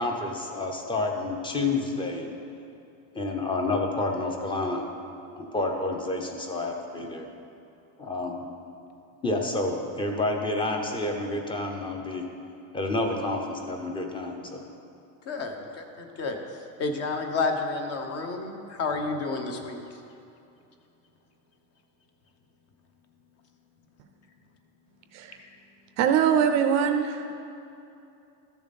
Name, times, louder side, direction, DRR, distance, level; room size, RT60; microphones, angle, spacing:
voice 1, 0.0-2.3 3.1-4.8 5.4-7.3 8.0-8.4 9.2-12.3 12.7-14.7, left 2 dB, 10° left, 3 dB, 0.6 m, -29 dB
voice 2, 15.3-16.4 16.8-19.8 25.4-25.5, left 3 dB, 35° left, 4 dB, 0.9 m, -30 dB
voice 3, 26.0-27.4, right 8 dB, 45° right, 7 dB, 0.5 m, -23 dB
13.5 x 7.0 x 4.1 m, 2.7 s
cardioid pair, 160°, 41 cm